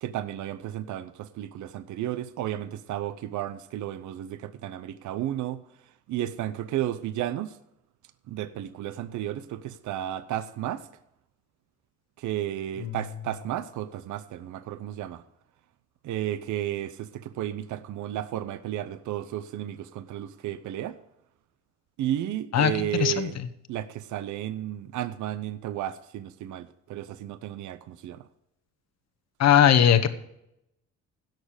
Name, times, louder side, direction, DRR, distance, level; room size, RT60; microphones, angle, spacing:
voice 1, 0.0-7.6 8.3-10.9 12.2-15.2 16.0-21.0 22.0-23.4 23.7-28.3, right 12 dB, 75° right, 13 dB, 0.7 m, -33 dB
voice 2, 22.5-23.3 29.4-30.1, left 9 dB, 60° left, 10 dB, 1.1 m, -20 dB
16.5 x 6.6 x 5.0 m, 0.83 s
cardioid pair, 90°, 30 cm